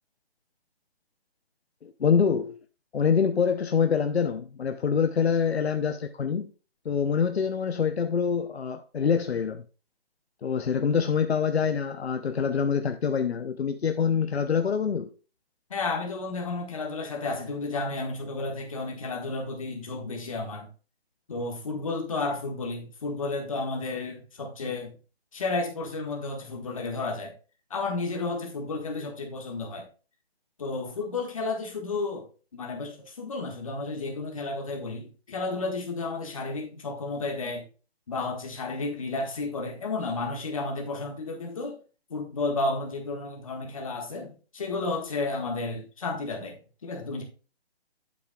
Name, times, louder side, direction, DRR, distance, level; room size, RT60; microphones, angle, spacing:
voice 1, 1.8-2.6 2.9-6.5 6.8-9.6 10.4-15.1, left 6 dB, 90° left, 0.7 m, -25 dB
voice 2, 15.7-20.7 21.3-24.9 25.3-27.3 27.7-29.9 30.6-32.2 32.5-37.7 38.1-41.8 42.1-47.2, left 3 dB, 35° left, 1.6 m, -32 dB
8.5 x 8.2 x 2.3 m
hypercardioid pair, 170°, 31 cm